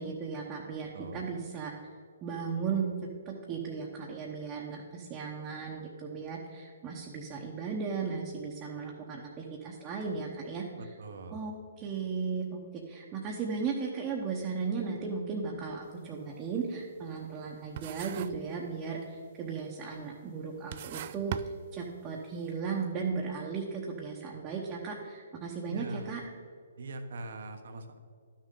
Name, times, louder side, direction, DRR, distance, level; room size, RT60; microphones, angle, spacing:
voice 1, 0.0-1.7 2.2-2.9 3.2-10.6 11.3-21.3 21.7-26.2, right 5 dB, 20° right, -3 dB, 1.0 m, -36 dB
voice 2, 10.8-11.4 25.6-26.1 26.8-28.0, right 2 dB, 65° right, 6 dB, 1.0 m, -41 dB
sound 1, 15.8-16.1 16.5-17.5 17.8-18.5 18.8-19.3 20.0-20.1 20.5-22.2, right 10 dB, 45° right, 0.3 m, -40 dB
11.5 x 6.5 x 3.8 m, 2.2 s
hypercardioid pair, 145°, 0 cm